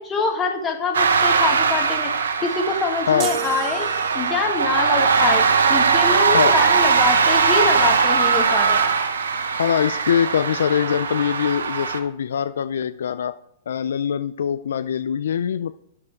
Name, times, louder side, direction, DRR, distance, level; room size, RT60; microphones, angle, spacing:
voice 1, 0.0-3.9 4.1-8.9, left 4 dB, 20° left, 3 dB, 1.6 m, -25 dB
sound 1, 0.9-12.0, right 5 dB, 80° right, 0.9 m, -20 dB
sound 2, 3.2-4.6, right 10 dB, 35° right, 0.6 m, -32 dB
voice 2, 9.4-13.3 13.7-15.7, left 8 dB, 75° left, 14 dB, 0.3 m, -23 dB
9.6 x 6.6 x 3.5 m, 0.77 s
hypercardioid pair, 120°, 0 cm